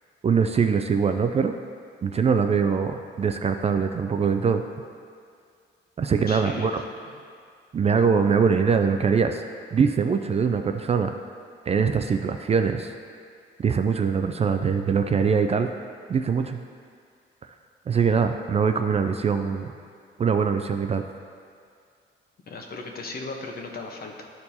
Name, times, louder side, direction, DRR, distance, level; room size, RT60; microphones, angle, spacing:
voice 1, 0.2-1.5 2.0-4.6 6.0-6.8 7.7-9.4 9.7-11.1 11.7-12.9 13.6-15.7 16.1-16.6 17.9-19.7 20.2-21.0, right 6 dB, 30° right, 7 dB, 0.4 m, -22 dB
voice 2, 6.3-7.1 22.5-24.3, left 3 dB, 50° left, 2 dB, 1.0 m, -37 dB
12.0 x 4.5 x 2.8 m, 2.2 s
cardioid pair, 90°, 20 cm